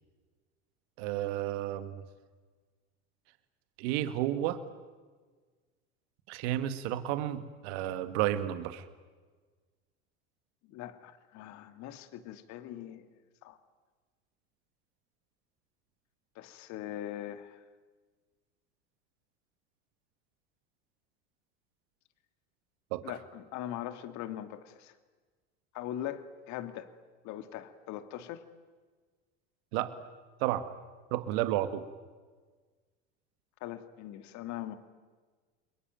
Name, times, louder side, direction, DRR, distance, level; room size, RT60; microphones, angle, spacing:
voice 1, 1.0-2.0 3.8-4.6 6.3-8.8 22.9-23.0 29.7-30.0 30.4-30.7 31.1-31.9, right 13 dB, 70° right, 11 dB, 2.0 m, -31 dB
voice 2, 10.6-13.1 13.4-13.6 16.4-17.6 23.0-24.9 25.7-26.9 27.2-28.4 33.6-34.7, left 12 dB, 55° left, 10 dB, 2.2 m, -41 dB
30.0 x 22.0 x 9.1 m, 1.4 s
hypercardioid pair, 95°, 33 cm